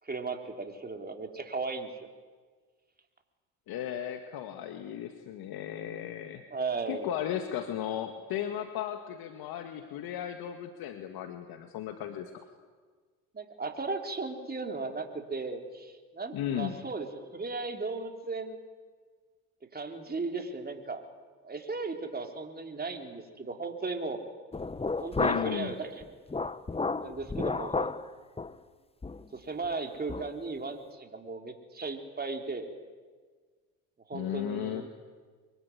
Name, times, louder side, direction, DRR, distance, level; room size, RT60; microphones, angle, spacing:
voice 1, 0.0-2.1 6.5-7.1 13.3-18.6 19.7-21.0 21.4-24.2 25.0-26.0 27.0-27.9 29.3-32.7 34.1-34.9, right 3 dB, 25° right, 4 dB, 4.0 m, -36 dB
voice 2, 3.7-6.4 6.9-12.4 16.3-16.8 25.2-25.8 34.1-34.8, left 10 dB, 65° left, 6 dB, 2.0 m, -35 dB
sound 1, 24.5-25.7 26.0-28.0 28.4-28.5 29.0-29.3 29.6-29.7 30.1-30.3, left 3 dB, 15° left, 1.1 m, -32 dB
24.5 x 21.5 x 9.6 m, 1.5 s
hypercardioid pair, 65°, 40 cm